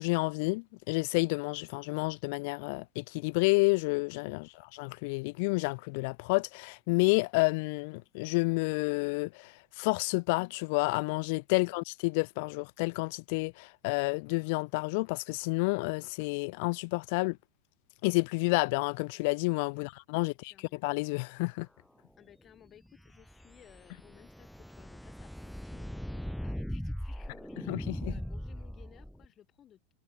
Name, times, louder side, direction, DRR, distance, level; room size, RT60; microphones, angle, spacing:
voice 1, 0.0-17.4 18.0-21.7 27.7-28.1, left 29 dB, 60° left, 0.5 m, -30 dB
voice 2, 19.7-20.8 22.2-29.9, left 10 dB, 30° left, 6.1 m, -59 dB
sound 1, 22.9-29.3, equal, ahead, 0.4 m, -40 dB
supercardioid pair, 120°, 0 cm